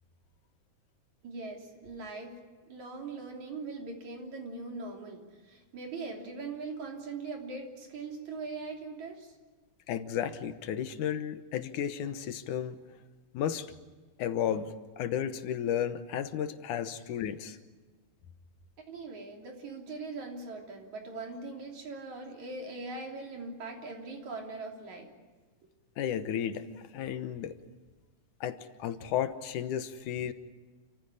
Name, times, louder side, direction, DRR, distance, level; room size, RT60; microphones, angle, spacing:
voice 1, 1.2-2.4 2.7-9.3 18.9-25.1, right 3 dB, 65° right, 1 dB, 4.5 m, -41 dB
voice 2, 9.9-12.8 13.3-13.7 14.2-17.6 26.0-27.6 28.4-30.3, left 9 dB, 80° left, 10 dB, 2.5 m, -33 dB
28.5 x 15.5 x 9.9 m, 1.3 s
omnidirectional pair, 3.6 m